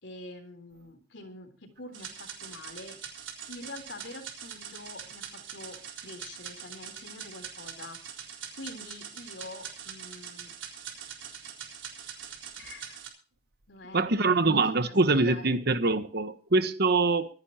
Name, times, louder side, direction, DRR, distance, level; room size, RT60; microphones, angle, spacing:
voice 1, 0.0-3.0 3.5-8.0 8.6-10.5 12.6-13.0 13.7-14.4 14.7-15.5, left 2 dB, 70° left, 3.8 m, -46 dB
sound 1, 1.9-13.1, right 8 dB, 80° right, 4.0 m, -43 dB
voice 2, 13.9-17.3, right 3 dB, 60° right, 1.4 m, -24 dB
25.0 x 11.0 x 2.9 m
head